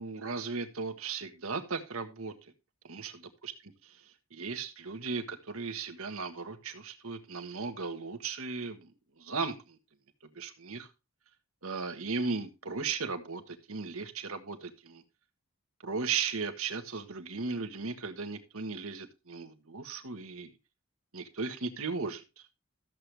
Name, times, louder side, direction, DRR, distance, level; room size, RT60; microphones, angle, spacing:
voice 1, 0.0-2.5 2.8-3.1 3.4-3.5 3.8-8.9 9.2-9.8 10.2-10.9 11.6-15.0 15.8-20.5 21.1-22.4, right 4 dB, 75° right, 8 dB, 1.5 m, -36 dB
13.5 x 7.8 x 3.4 m, 0.27 s
head